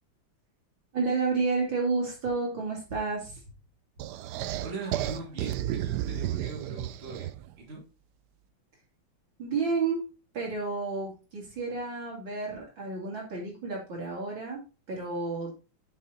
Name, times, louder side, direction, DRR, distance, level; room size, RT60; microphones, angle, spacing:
voice 1, 0.9-3.4 9.4-10.1 10.3-15.6, right 4 dB, 60° right, -2 dB, 3.5 m, -31 dB
sound 1, 4.0-7.5, right 12 dB, 85° right, 0.9 m, -32 dB
voice 2, 4.6-7.8, right 3 dB, 30° right, -3 dB, 2.9 m, -41 dB
7.2 x 6.8 x 4.1 m, 0.32 s
omnidirectional pair, 2.4 m